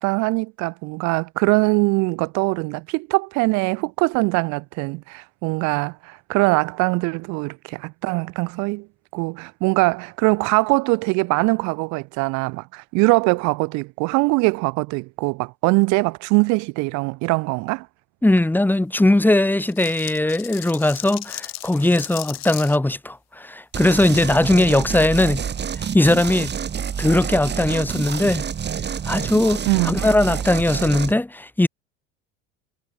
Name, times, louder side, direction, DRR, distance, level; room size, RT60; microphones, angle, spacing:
voice 1, 0.0-8.9 9.1-17.9 29.7-30.0, right 27 dB, 65° right, 1.8 m, -22 dB
voice 2, 18.2-25.5 25.9-26.5 27.0-28.5 29.0-31.7, left 1 dB, 5° left, 1.7 m, -19 dB
sound 1, 19.6-22.8 24.0-24.3, left 17 dB, 55° left, 3.0 m, -36 dB
sound 2, 23.7-31.1, right 7 dB, 35° right, 3.7 m, -28 dB
hypercardioid pair, 80°, 31 cm